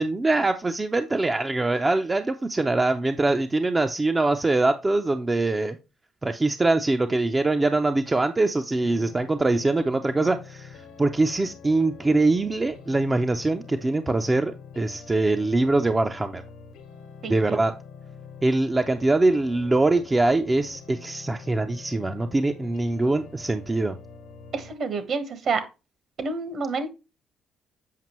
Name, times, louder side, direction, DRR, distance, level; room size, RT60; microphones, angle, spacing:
voice 1, 0.0-5.8 6.2-16.4 17.3-17.7 18.4-24.0, right 2 dB, 20° right, 0.5 m, -23 dB
sound 1, 8.7-24.7, left 5 dB, 85° left, 1.1 m, -45 dB
voice 2, 17.2-17.6 24.5-25.6 26.2-26.9, right 4 dB, 55° right, 1.2 m, -28 dB
7.5 x 5.1 x 3.0 m
cardioid pair, 90°, 0 cm